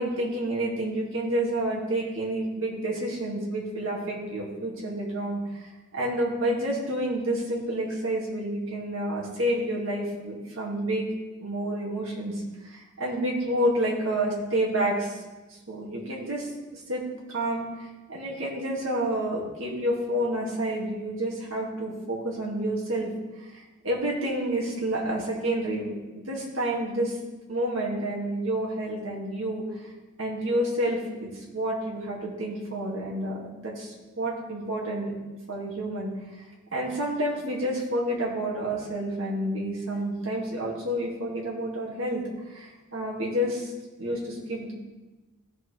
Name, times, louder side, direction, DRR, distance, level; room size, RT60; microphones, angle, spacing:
voice 1, 0.0-11.1 11.4-15.2 15.7-16.5 16.9-17.0 17.3-27.2 27.5-29.6 30.2-35.1 35.5-36.2 36.7-43.7 44.0-44.7, right 1 dB, 65° right, -4 dB, 2.2 m, -29 dB
15.5 x 5.8 x 3.3 m, 1.2 s
head